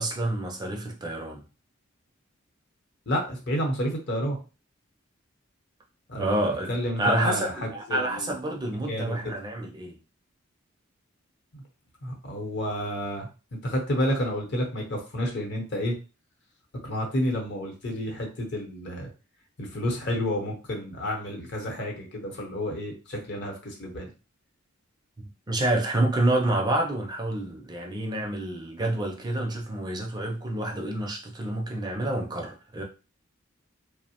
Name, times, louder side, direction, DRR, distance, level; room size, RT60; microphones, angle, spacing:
voice 1, 0.0-1.4 6.2-6.7 7.0-10.0 25.5-32.8, right 1 dB, 20° right, 0.4 m, -28 dB
voice 2, 3.1-4.4 6.1-6.4 6.7-8.3 8.9-9.3 12.0-15.9 16.8-19.1 19.6-24.1, equal, 55° left, 0.8 m, -30 dB
2.7 x 2.0 x 2.8 m
head